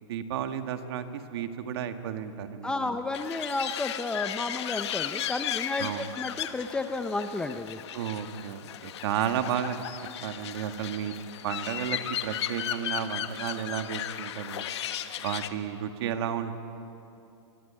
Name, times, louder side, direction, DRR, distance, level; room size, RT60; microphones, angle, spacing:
voice 1, 0.1-2.9 5.8-6.1 7.9-9.8 10.2-11.1 11.4-14.6 15.2-16.6, right 9 dB, 55° right, 7 dB, 1.8 m, -32 dB
voice 2, 2.6-7.8, left 2 dB, 5° left, 8 dB, 0.5 m, -32 dB
sound 1, 3.1-15.5, left 11 dB, 65° left, 1.4 m, -35 dB
25.0 x 22.5 x 8.8 m, 2.9 s
supercardioid pair, 165°, 15 cm